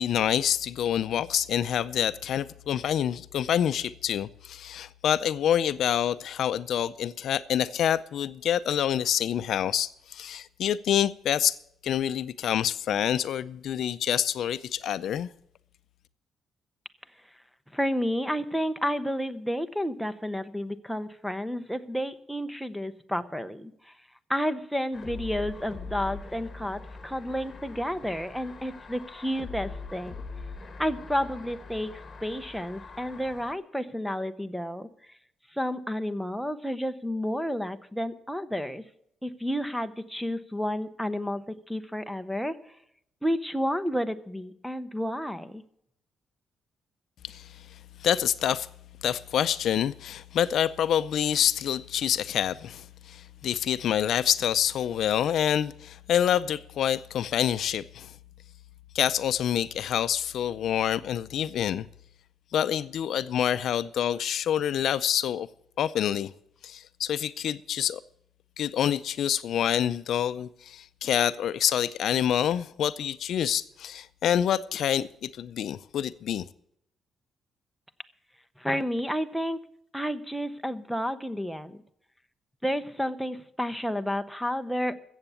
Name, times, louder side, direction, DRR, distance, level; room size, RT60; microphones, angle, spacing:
voice 1, 0.0-11.6 11.8-15.3 47.2-47.6 48.0-48.7 49.0-58.1 58.9-61.9 62.5-65.5 65.8-66.3 66.6-68.0 68.6-76.4, left 10 dB, 60° left, 0.5 m, -27 dB
voice 2, 17.7-23.9 24.3-30.2 30.8-31.9 32.2-34.9 35.5-38.8 39.2-42.5 43.2-45.6 78.6-79.6 79.9-81.8 82.6-84.9, equal, ahead, 0.7 m, -31 dB
sound 1, 24.9-33.5, left 4 dB, 25° left, 1.8 m, -42 dB
14.5 x 8.0 x 7.0 m
cardioid pair, 155°, 0 cm